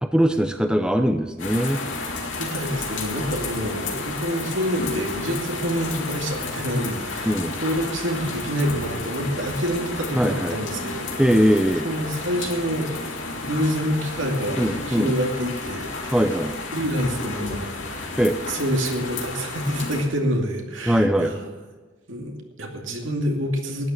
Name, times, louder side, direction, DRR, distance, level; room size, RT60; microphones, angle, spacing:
voice 1, 0.0-1.8 7.3-7.5 10.1-10.6 11.2-11.9 14.6-15.1 16.1-16.6 18.2-18.4 20.9-21.3, equal, 5° right, 7 dB, 0.6 m, -21 dB
sound 1, 1.4-20.0, left 3 dB, 65° left, 3.0 m, -32 dB
voice 2, 2.4-7.3 7.6-11.2 11.8-12.9 13.4-16.3 16.7-17.7 18.5-21.5 22.1-23.9, equal, 70° right, 2 dB, 2.5 m, -27 dB
12.5 x 10.0 x 7.9 m, 1.3 s
head